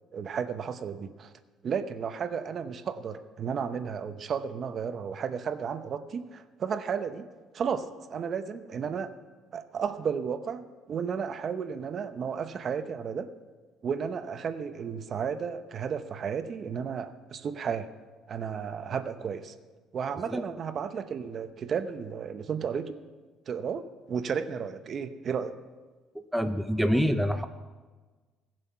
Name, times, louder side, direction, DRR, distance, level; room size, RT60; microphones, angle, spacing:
voice 1, 0.1-1.3 1.6-7.3 7.5-9.1 9.5-13.3 13.8-17.9 18.3-19.5 19.9-23.0 23.5-25.5, right 6 dB, 40° right, 10 dB, 0.7 m, -33 dB
voice 2, 26.1-27.4, equal, ahead, 8 dB, 0.5 m, -26 dB
17.0 x 7.7 x 5.7 m, 1.3 s
cardioid pair, 130°, 0 cm